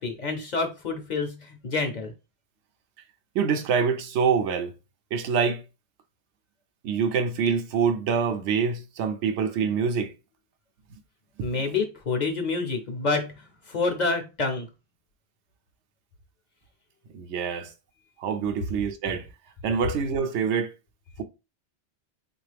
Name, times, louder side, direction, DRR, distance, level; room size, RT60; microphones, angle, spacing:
voice 1, 0.0-2.1 11.4-14.7, left 3 dB, 50° left, 0.7 m, -28 dB
voice 2, 3.3-4.7 5.1-5.6 6.8-10.1 17.1-17.7 18.2-19.3 19.6-20.7, right 6 dB, 90° right, 0.9 m, -25 dB
3.7 x 2.4 x 3.3 m
omnidirectional pair, 1.2 m